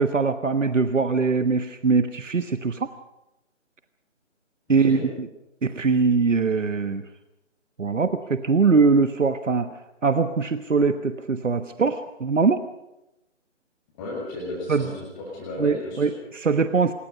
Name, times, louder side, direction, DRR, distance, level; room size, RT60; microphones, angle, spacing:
voice 1, 0.0-2.9 4.7-5.0 5.6-7.0 7.8-9.7 10.0-12.6 14.7-14.9 15.6-16.9, right 4 dB, 75° right, 10 dB, 1.3 m, -22 dB
voice 2, 14.0-16.1, left 2 dB, 20° left, -3 dB, 6.4 m, -34 dB
26.0 x 22.0 x 5.5 m, 0.93 s
figure-of-eight pair, 150°, 38 cm